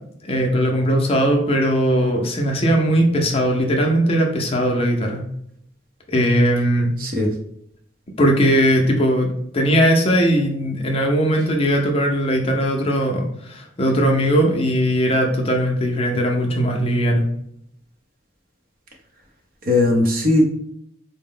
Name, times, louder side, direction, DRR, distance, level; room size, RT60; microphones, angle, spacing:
voice 1, 0.2-5.2 6.1-6.9 8.2-9.3 9.5-17.3, equal, 30° left, 1 dB, 0.5 m, -19 dB
voice 2, 7.0-7.3 19.6-20.4, left 2 dB, 50° right, 2 dB, 0.7 m, -18 dB
4.1 x 2.1 x 3.7 m, 0.71 s
head